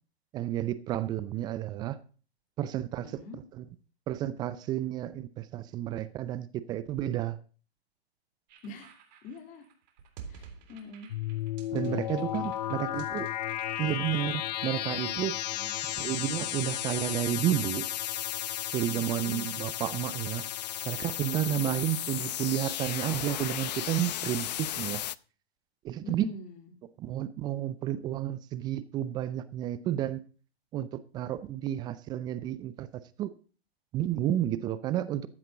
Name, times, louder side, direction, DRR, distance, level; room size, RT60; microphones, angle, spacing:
voice 1, 0.3-2.0 2.6-3.2 3.6-3.7 4.1-7.4 11.7-13.3 13.8-15.4 16.0-17.9 18.7-20.4 20.9-25.0 25.8-26.2 27.0-30.2 30.7-32.9 33.2-33.3 33.9-35.3, right 12 dB, 15° right, 0.5 m, -31 dB
voice 2, 3.0-3.4 8.6-8.9 9.2-9.6 10.3-11.1 11.7-12.1 12.6-13.2 15.5-16.1 18.9-19.5 21.4-21.9 26.0-26.8, left 2 dB, 25° left, 3.1 m, -45 dB
sound 1, 8.5-14.3, right 7 dB, 45° right, 3.5 m, -51 dB
sound 2, 11.1-25.2, left 13 dB, 40° left, 0.6 m, -34 dB
14.5 x 10.5 x 3.9 m
hypercardioid pair, 130°, 31 cm